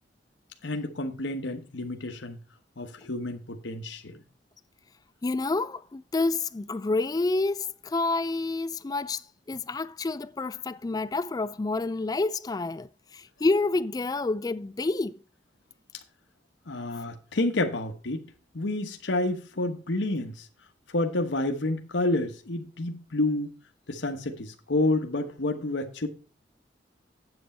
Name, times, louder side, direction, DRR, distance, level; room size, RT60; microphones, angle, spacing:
voice 1, 0.6-2.4 2.8-4.2 16.7-18.2 18.5-20.5 20.9-23.5 23.9-26.1, left 2 dB, 75° left, 1.1 m, -29 dB
voice 2, 5.2-15.2, left 3 dB, 20° left, 0.3 m, -28 dB
8.1 x 7.9 x 4.3 m
head